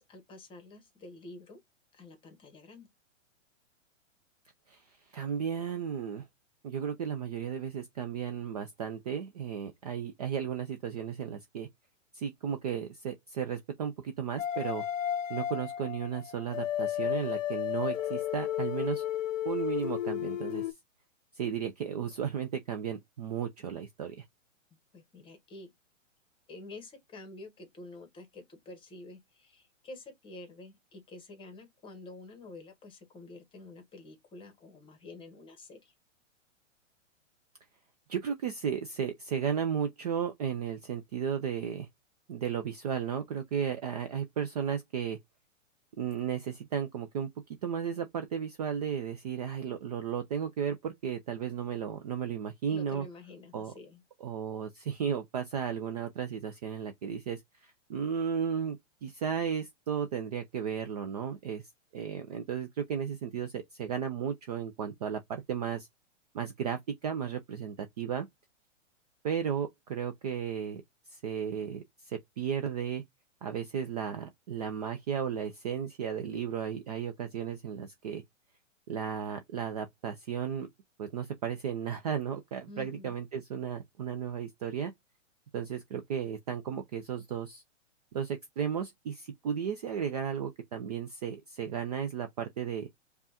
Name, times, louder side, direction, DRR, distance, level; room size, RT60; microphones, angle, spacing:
voice 1, 0.0-1.6 1.9-2.9 24.9-25.7 26.5-35.9 52.7-54.0 82.7-83.2, left 2 dB, 15° left, 1.0 m, -49 dB
voice 2, 5.1-6.2 6.6-11.7 12.1-14.9 15.3-19.0 19.4-20.7 21.3-24.2 38.1-41.9 42.3-45.2 46.0-47.3 47.6-53.1 53.5-53.7 54.2-61.6 61.9-65.9 66.3-68.3 69.2-70.8 71.1-73.0 73.4-78.2 78.9-80.7 81.0-84.9 85.5-87.6 88.1-92.9, right 8 dB, 35° right, 0.4 m, -34 dB
sound 1, 14.4-20.7, left 11 dB, 80° left, 0.6 m, -33 dB
5.2 x 2.3 x 2.8 m
hypercardioid pair, 135°, 38 cm